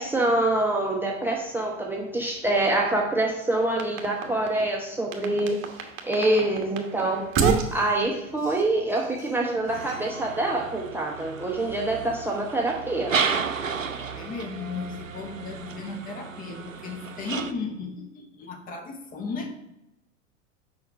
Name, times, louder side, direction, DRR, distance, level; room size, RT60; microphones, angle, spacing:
voice 1, 0.0-5.6 6.0-7.3 7.7-13.2, right 2 dB, 5° right, -1 dB, 0.8 m, -25 dB
sound 1, 3.5-4.7 5.1-10.0, right 5 dB, 30° right, 1.1 m, -30 dB
sound 2, 9.7-17.5, right 6 dB, 85° right, 0.6 m, -33 dB
voice 2, 14.1-19.6, left 4 dB, 20° left, 4 dB, 1.0 m, -35 dB
6.9 x 5.1 x 4.6 m, 0.94 s
figure-of-eight pair, 90°, 38 cm